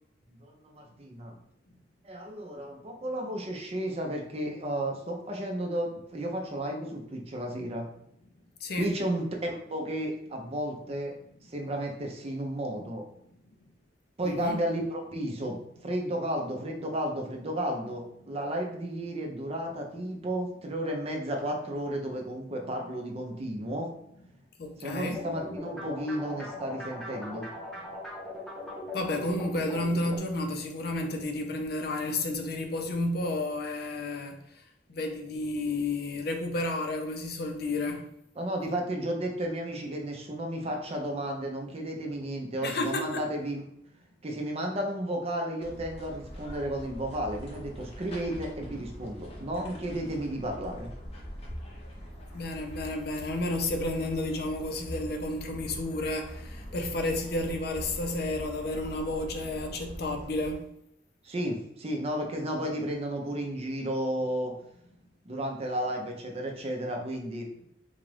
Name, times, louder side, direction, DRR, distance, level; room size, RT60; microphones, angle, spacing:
voice 1, 0.4-1.3 2.0-7.9 8.8-11.2 11.5-13.0 14.2-15.6 15.8-23.9 24.8-27.5 38.4-43.6 44.2-50.9 61.2-64.5 65.3-67.5, right 1 dB, 35° right, 2 dB, 0.5 m, -33 dB
voice 2, 8.6-8.9 14.2-14.6 18.2-18.3 24.6-25.2 28.9-34.4 34.9-38.1 42.6-43.2 52.3-60.7, left 2 dB, 60° left, 4 dB, 0.5 m, -31 dB
sound 1, 25.0-30.2, left 1 dB, 5° left, 0.9 m, -40 dB
sound 2, 45.6-60.5, equal, 35° left, 0.8 m, -43 dB
3.9 x 2.4 x 3.2 m, 0.76 s
head